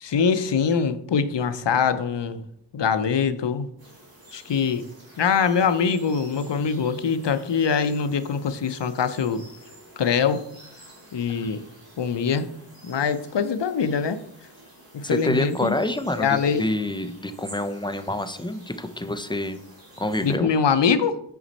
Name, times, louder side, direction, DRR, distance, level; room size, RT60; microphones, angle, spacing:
voice 1, 0.0-2.4 2.7-3.7 4.3-4.8 5.2-9.4 10.0-10.4 11.1-11.6 12.0-12.5 12.8-14.2 14.9-15.7 16.2-16.7 20.2-21.2, left 6 dB, 80° left, 11 dB, 0.6 m, -23 dB
sound 1, 3.8-20.4, right 1 dB, 55° right, 2.2 m, -49 dB
voice 2, 15.0-19.6 20.0-20.5, left 1 dB, 10° left, 10 dB, 0.4 m, -27 dB
5.9 x 5.2 x 4.1 m, 0.71 s
wide cardioid pair, 60°, 42 cm